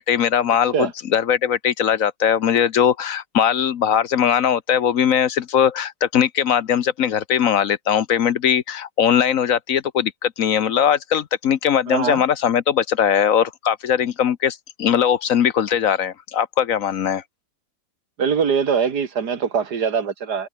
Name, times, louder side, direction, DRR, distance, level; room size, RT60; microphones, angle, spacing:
voice 1, 0.0-17.2, left 8 dB, 60° left, 1.2 m, -20 dB
voice 2, 11.9-12.2 18.2-20.5, right 6 dB, 90° right, 2.5 m, -22 dB
omnidirectional pair, 1.7 m